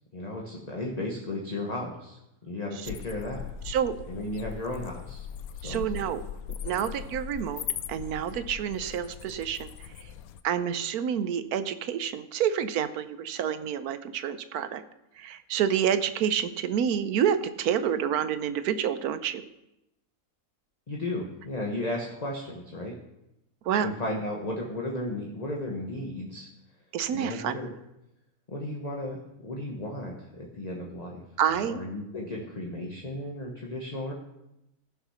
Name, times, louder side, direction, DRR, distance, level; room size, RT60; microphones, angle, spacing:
voice 1, 0.1-3.4 4.1-5.3 5.5-6.1 6.6-6.8 20.9-22.9 23.8-26.5 27.1-27.7 28.5-31.2 31.6-34.1, left 1 dB, 30° left, -1 dB, 1.2 m, -35 dB
sound 1, 2.9-10.4, left 9 dB, 75° left, 1.0 m, -39 dB
voice 2, 3.7-4.0 5.6-6.2 6.6-9.9 10.4-14.8 15.2-19.4 23.6-23.9 26.9-27.6 31.4-31.8, right 8 dB, 85° right, 12 dB, 1.2 m, -28 dB
15.0 x 5.9 x 5.7 m, 0.90 s
omnidirectional pair, 1.6 m